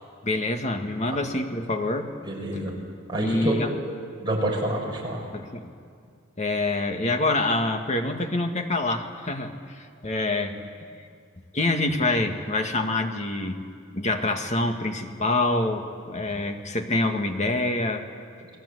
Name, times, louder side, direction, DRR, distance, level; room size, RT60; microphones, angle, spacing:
voice 1, 0.2-2.1 3.2-3.7 5.3-5.7 6.4-10.6 11.5-13.6 13.9-18.1, left 2 dB, 35° left, 5 dB, 1.9 m, -26 dB
voice 2, 2.2-2.7 3.1-3.6 4.2-5.2, right 1 dB, 20° right, -2 dB, 5.9 m, -28 dB
30.0 x 20.0 x 8.2 m, 2.3 s
head